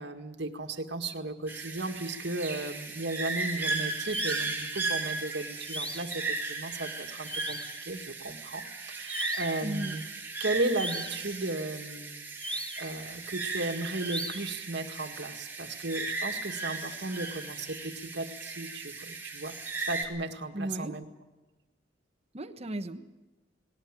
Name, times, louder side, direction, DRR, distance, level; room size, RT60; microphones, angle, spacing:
voice 1, 0.0-10.0 10.4-19.6 19.9-21.1, right 2 dB, 65° right, 6 dB, 1.9 m, -35 dB
sound 1, 1.5-20.0, right 3 dB, 10° right, 3.9 m, -36 dB
sound 2, 4.1-4.6 5.7-6.2 7.2-7.8 9.1-9.6 10.7-11.3 12.4-13.0 14.0-14.6, right 1 dB, 5° left, 1.7 m, -37 dB
voice 2, 9.6-10.0 20.5-20.9 22.3-23.0, right 1 dB, 35° right, 9 dB, 1.2 m, -35 dB
19.5 x 18.0 x 9.0 m, 1.1 s
head